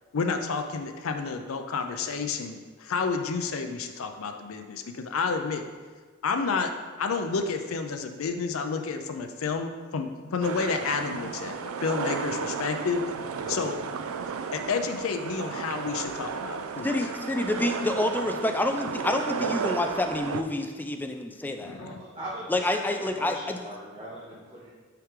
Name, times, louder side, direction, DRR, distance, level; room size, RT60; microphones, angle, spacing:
voice 1, 0.1-5.6 6.2-6.7 7.0-13.0 13.5-13.8 14.5-16.9 21.6-22.0, left 4 dB, 75° left, 6 dB, 0.5 m, -30 dB
sound 1, 10.4-20.4, right 6 dB, 75° right, 0.4 m, -33 dB
voice 2, 16.8-21.8 22.5-23.6, left 1 dB, 10° left, 5 dB, 0.3 m, -28 dB
voice 3, 21.8-24.7, right 1 dB, 30° right, -9 dB, 1.2 m, -40 dB
5.7 x 4.8 x 3.7 m, 1.4 s
head